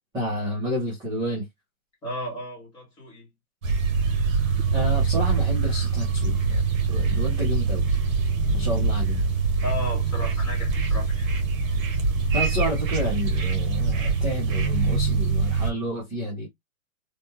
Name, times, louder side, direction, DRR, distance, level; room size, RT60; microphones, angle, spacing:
voice 1, 0.1-1.5 4.7-8.0 8.5-9.2 12.3-16.5, equal, 10° right, 0.7 m, -30 dB
voice 2, 2.0-3.3 9.6-11.3, left 1 dB, 10° left, 1.0 m, -34 dB
sound 1, 3.6-15.7, right 4 dB, 65° right, 1.2 m, -24 dB
3.4 x 2.2 x 2.8 m
hypercardioid pair, 165°, 44 cm